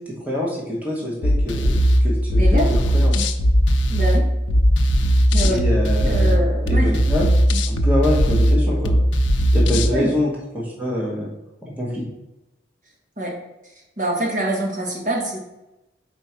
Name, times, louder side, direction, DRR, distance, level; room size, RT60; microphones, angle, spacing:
voice 1, 0.1-3.2 5.4-6.4 6.6-7.3 7.7-9.0 9.5-11.3 11.8-12.1, left 1 dB, 10° right, -4 dB, 1.3 m, -25 dB
sound 1, 1.2-9.9, equal, 75° left, 0.6 m, -18 dB
voice 2, 2.3-2.7 3.9-4.3 5.3-5.6 6.0-7.0 9.9-10.1 13.2-13.3 14.0-15.4, right 1 dB, 40° right, -2 dB, 1.4 m, -24 dB
4.5 x 4.4 x 5.7 m, 0.95 s
head